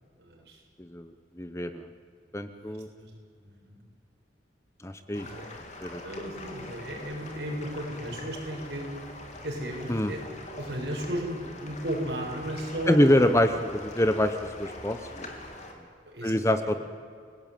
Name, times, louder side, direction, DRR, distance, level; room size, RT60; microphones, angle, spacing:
voice 1, 0.2-0.6 2.5-3.1 3.4-3.8 5.1-5.5 6.0-8.9 9.4-10.2 10.5-13.3 16.1-16.7, right 1 dB, 60° right, -1 dB, 7.5 m, -35 dB
voice 2, 0.8-1.9 2.3-2.9 4.8-5.3 5.8-6.0 9.9-10.1 12.9-15.3 16.2-16.8, left 1 dB, 15° left, 8 dB, 1.0 m, -25 dB
sound 1, 5.1-15.7, left 2 dB, 40° left, 3.5 m, -43 dB
29.5 x 19.0 x 9.3 m, 2.1 s
head